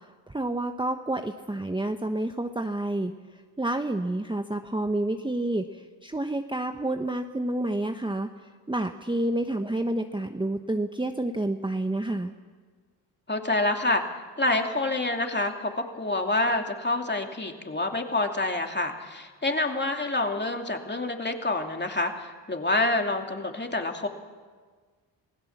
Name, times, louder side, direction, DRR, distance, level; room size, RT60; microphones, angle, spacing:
voice 1, 0.0-12.3, right 1 dB, 10° right, 6 dB, 1.1 m, -29 dB
voice 2, 13.3-14.0 14.4-24.1, left 2 dB, 25° left, 3 dB, 2.7 m, -27 dB
27.0 x 16.5 x 7.3 m, 1.5 s
cardioid pair, 65°, 45 cm